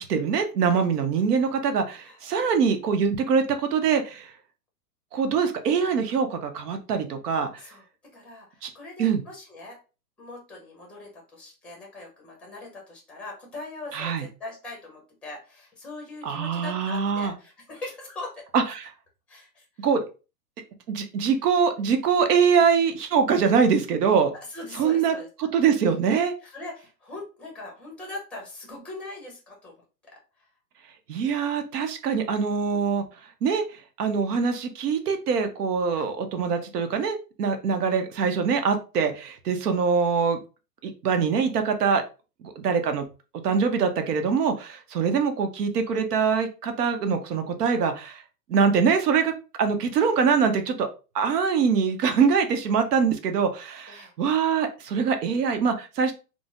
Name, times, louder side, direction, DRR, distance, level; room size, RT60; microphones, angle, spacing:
voice 1, 0.0-4.3 5.1-7.6 8.6-8.7 9.0-9.2 13.9-14.2 16.2-17.3 18.5-18.9 19.8-20.0 20.9-24.3 24.8-26.3 31.1-33.0 33.4-33.6 34.0-40.4 40.8-42.0 42.4-43.0 43.4-48.2 48.5-49.3 49.6-50.9 51.1-56.1, right 6 dB, 70° right, 7 dB, 0.8 m, -23 dB
voice 2, 8.1-9.8 10.2-18.4 19.3-19.9 21.3-21.4 24.5-25.3 26.4-29.7 34.3-34.5 35.9-36.1 39.6-39.8 44.9-45.1 53.9-54.1, left 2 dB, ahead, 0 dB, 0.7 m, -41 dB
3.8 x 2.1 x 2.3 m, 0.32 s
hypercardioid pair, 140°, 49 cm